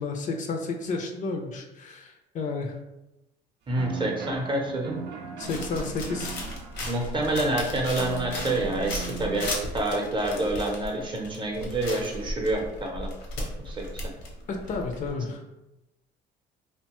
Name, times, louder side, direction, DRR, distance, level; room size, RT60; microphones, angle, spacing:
voice 1, 0.0-2.8 5.4-6.4 14.5-15.4, left 3 dB, 50° left, 3 dB, 0.4 m, -31 dB
voice 2, 3.7-5.1 6.8-13.1 13.4-13.8, right 2 dB, 30° right, 1 dB, 0.6 m, -28 dB
sound 1, 3.7-9.4, right 5 dB, 85° right, 0.5 m, -39 dB
sound 2, 5.4-15.1, left 1 dB, 80° left, 0.7 m, -36 dB
2.7 x 2.2 x 2.9 m, 0.96 s
cardioid pair, 110°, 17 cm